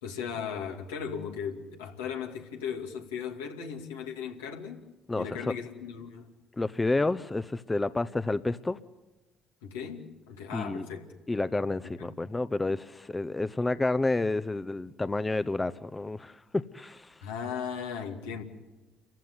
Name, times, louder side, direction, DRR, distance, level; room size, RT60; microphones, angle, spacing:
voice 1, 0.0-4.9 5.1-6.3 9.6-11.1 11.8-12.2 17.2-18.4, left 7 dB, 90° left, 2.5 m, -37 dB
voice 2, 5.1-5.5 6.6-8.8 10.5-10.9 11.3-17.1, left 2 dB, 20° left, 0.9 m, -30 dB
28.5 x 15.0 x 9.6 m
hypercardioid pair, 55°, 0 cm